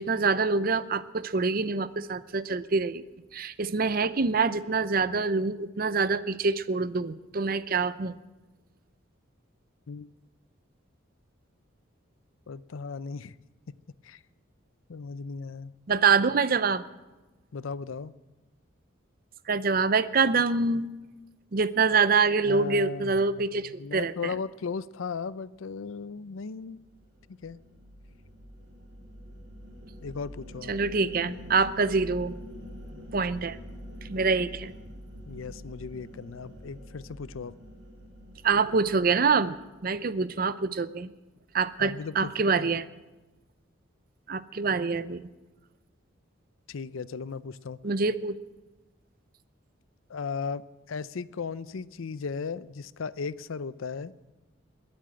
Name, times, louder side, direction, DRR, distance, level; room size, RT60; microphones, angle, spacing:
voice 1, 0.0-3.0 3.3-8.1 15.9-16.8 19.5-20.9 21.5-24.3 30.7-32.3 33.1-33.6 34.1-34.7 38.4-41.1 41.5-42.8 44.3-45.3 47.8-48.4, right 4 dB, 45° right, 15 dB, 0.6 m, -25 dB
voice 2, 12.5-13.4 14.0-14.2 14.9-15.7 17.5-18.1 22.5-26.8 27.4-27.6 30.0-30.8 35.3-37.6 41.8-42.3 42.6-42.7 46.7-47.8 50.1-54.1, left 5 dB, 90° left, 18 dB, 0.5 m, -36 dB
sound 1, 26.8-40.3, equal, 65° right, 3.9 m, -45 dB
21.0 x 8.8 x 7.7 m, 1.1 s
head